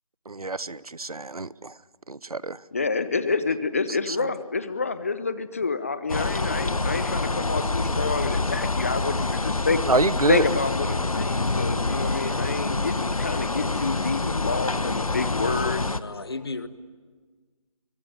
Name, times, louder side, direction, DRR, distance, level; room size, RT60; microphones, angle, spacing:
voice 1, 0.3-1.7 2.1-2.6 4.1-4.3 9.8-10.4, right 3 dB, 80° right, 20 dB, 0.9 m, -26 dB
voice 2, 2.7-9.8 10.3-15.9, left 4 dB, 25° left, 14 dB, 0.9 m, -28 dB
sound 1, 6.1-16.0, left 3 dB, 70° left, 1.2 m, -26 dB
voice 3, 14.2-14.5 15.9-16.7, left 3 dB, 40° left, 13 dB, 1.4 m, -36 dB
25.0 x 23.5 x 9.8 m, 1.4 s
figure-of-eight pair, 165°, 19 cm